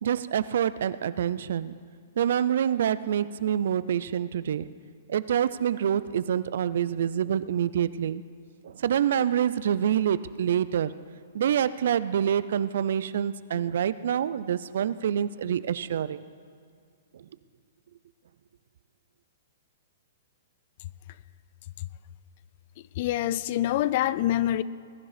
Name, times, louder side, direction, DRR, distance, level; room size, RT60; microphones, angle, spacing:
voice 1, 0.0-1.8 2.2-4.7 5.1-8.2 8.6-10.9 11.3-16.2, right 9 dB, 70° right, 16 dB, 0.5 m, -26 dB
voice 2, 23.0-24.6, left 13 dB, 50° left, 18 dB, 0.5 m, -25 dB
20.5 x 11.0 x 5.0 m, 2.2 s
hypercardioid pair, 135°, 0 cm